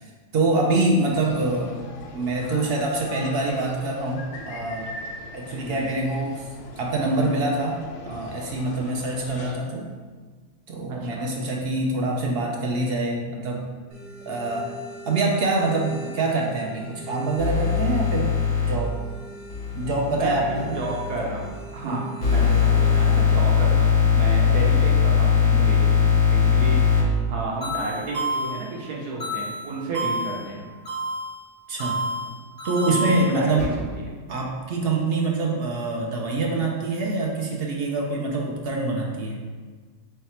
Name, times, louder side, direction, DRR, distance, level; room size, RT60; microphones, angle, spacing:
voice 1, 0.0-1.8 2.1-4.9 5.3-6.5 6.8-7.8 8.1-9.9 10.7-13.7 14.2-14.7 15.0-18.3 18.7-18.9 19.7-20.8 21.8-22.1 31.7-32.0 32.6-33.7 34.3-39.4, right 2 dB, 65° right, -1 dB, 0.6 m, -25 dB
sound 1, 1.1-9.6, left 2 dB, 80° left, 1.1 m, -41 dB
voice 2, 10.9-11.2 20.1-30.6 32.9-33.7, right 2 dB, 85° right, -3 dB, 1.4 m, -32 dB
sound 2, 13.9-23.2, equal, 45° right, 1.3 m, -42 dB
sound 3, 17.4-18.7 19.5-21.5 22.2-27.0 27.6-28.7 29.2-30.5 30.9-31.4 31.8-33.6, left 6 dB, 30° left, 1.6 m, -22 dB
3.5 x 3.2 x 4.3 m, 1.4 s
omnidirectional pair, 1.6 m